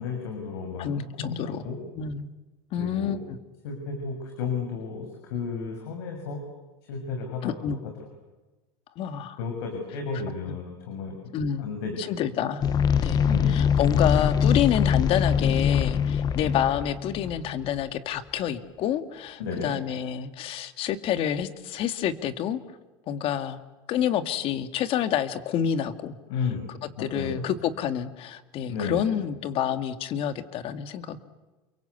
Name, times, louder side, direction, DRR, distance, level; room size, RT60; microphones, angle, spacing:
voice 1, 0.0-1.8 2.8-3.1 3.6-6.4 6.9-8.1 9.4-11.2 11.6-12.0 13.2-13.6 19.4-19.7 26.3-26.6 27.0-27.4 28.7-29.1, left 5 dB, 85° left, 3 dB, 6.6 m, -33 dB
voice 2, 0.8-1.6 2.0-2.3 2.7-3.4 7.4-7.8 9.0-9.4 11.3-11.7 12.0-12.6 13.0-22.6 23.1-23.6 23.9-26.2 26.8-31.2, left 9 dB, 45° left, 9 dB, 2.2 m, -28 dB
sound 1, 12.6-17.8, left 7 dB, 30° left, 1.0 m, -23 dB
29.5 x 23.5 x 8.3 m, 1.2 s
supercardioid pair, 130°, 13 cm